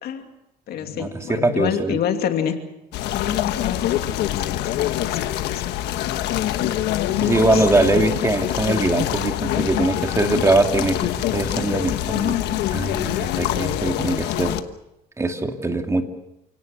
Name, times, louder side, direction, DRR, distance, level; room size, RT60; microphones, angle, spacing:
voice 1, 0.0-0.3 0.7-2.6 3.0-6.0 7.3-7.6, left 9 dB, 70° left, 5 dB, 2.7 m, -28 dB
voice 2, 0.9-2.0 7.2-11.0 11.3-14.6 15.2-16.0, right 2 dB, 15° right, 4 dB, 2.4 m, -22 dB
sound 1, 2.9-14.6, left 13 dB, 85° left, 1.3 m, -25 dB
29.0 x 17.5 x 6.8 m, 0.89 s
cardioid pair, 110°, 17 cm